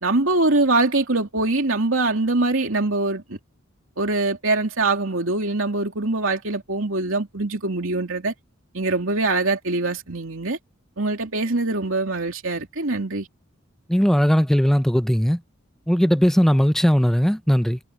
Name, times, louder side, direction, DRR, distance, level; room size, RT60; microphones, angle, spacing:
voice 1, 0.0-3.2 4.0-8.3 8.7-10.6 11.0-13.3, right 2 dB, 75° right, 3.1 m, -23 dB
voice 2, 13.9-15.4 15.9-17.8, equal, ahead, 0.6 m, -18 dB
head